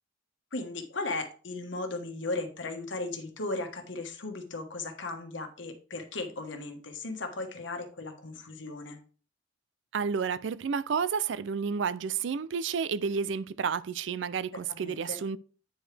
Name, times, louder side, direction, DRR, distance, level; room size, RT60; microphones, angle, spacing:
voice 1, 0.5-9.0 14.7-15.2, left 2 dB, 75° left, 1.3 m, -36 dB
voice 2, 9.9-15.4, right 6 dB, 70° right, 0.4 m, -31 dB
8.8 x 4.9 x 3.3 m
head